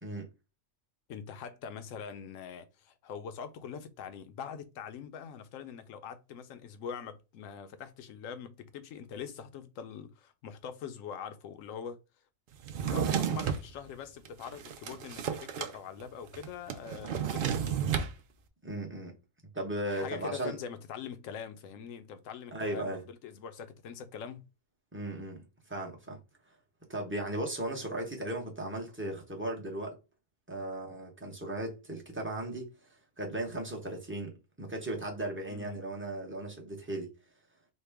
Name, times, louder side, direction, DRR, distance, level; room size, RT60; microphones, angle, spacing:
voice 1, 0.0-0.3 13.0-13.2 18.6-19.1 19.5-20.6 22.5-23.0 24.9-26.2 26.9-30.0 30.5-32.9 33.2-37.1, right 1 dB, 15° right, 0.5 m, -37 dB
voice 2, 1.1-12.0 12.8-17.8 19.9-24.4 30.6-30.7 35.5-35.8, left 7 dB, 75° left, 0.9 m, -43 dB
Drawer open or close, 12.6-13.7 14.3-15.8 16.0-16.1 16.3-18.1, right 8 dB, 65° right, 0.5 m, -32 dB
4.3 x 2.1 x 3.4 m
omnidirectional pair, 1.4 m